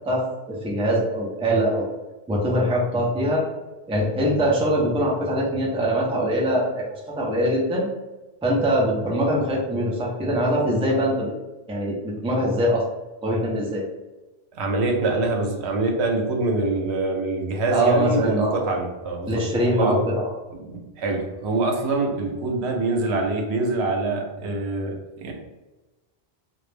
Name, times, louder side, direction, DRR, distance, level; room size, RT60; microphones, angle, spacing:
voice 1, 0.5-1.9 2.3-3.4 3.9-6.9 7.2-7.9 8.4-11.3 11.7-12.8 13.2-13.8 17.7-18.6 19.3-20.3, equal, 10° right, -3 dB, 0.3 m, -22 dB
voice 2, 14.5-19.4 19.8-20.0 20.6-25.3, right 2 dB, 85° right, 1 dB, 0.9 m, -25 dB
2.3 x 2.0 x 3.2 m, 1.1 s
omnidirectional pair, 1.1 m